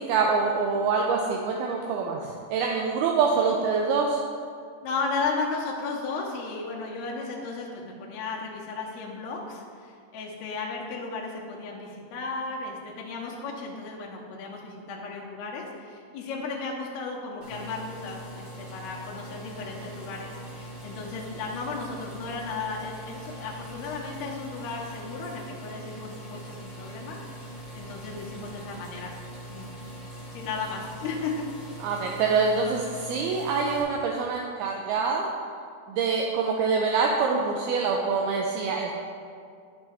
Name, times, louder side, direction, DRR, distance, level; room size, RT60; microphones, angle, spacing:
voice 1, 0.0-2.2 2.5-4.2 31.8-35.3 35.9-38.9, right 5 dB, 85° right, 0 dB, 2.2 m, -25 dB
voice 2, 4.8-27.2 27.5-29.1 29.5-29.7 30.3-31.4, left 4 dB, 75° left, -2 dB, 2.8 m, -35 dB
sound 1, 17.4-33.8, right 1 dB, 70° right, 0.5 m, -42 dB
9.0 x 6.6 x 3.4 m, 2.3 s
omnidirectional pair, 5.0 m